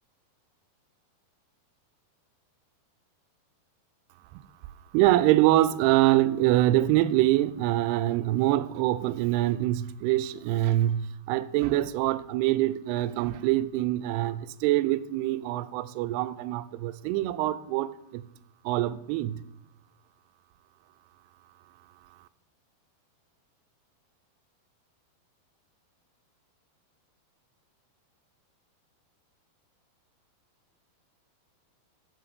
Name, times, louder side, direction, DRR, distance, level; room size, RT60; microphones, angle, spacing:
voice 1, 4.9-18.2 18.7-19.4, right 15 dB, 85° right, 2.5 m, -25 dB
13.0 x 5.3 x 6.7 m
omnidirectional pair, 4.7 m